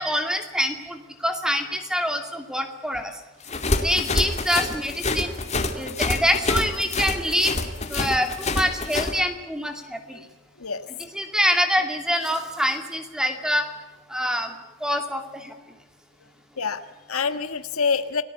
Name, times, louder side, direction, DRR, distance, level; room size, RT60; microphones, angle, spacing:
voice 1, 0.0-3.1 3.8-5.4 5.7-7.5 7.9-10.2 11.1-13.7 14.1-14.5 14.8-15.6, equal, 5° right, 6 dB, 2.5 m, -25 dB
sound 1, 3.4-9.1, left 2 dB, 30° left, 2.6 m, -26 dB
voice 2, 16.6-18.2, left 5 dB, 80° left, 10 dB, 1.5 m, -27 dB
29.5 x 19.0 x 8.3 m, 1.1 s
head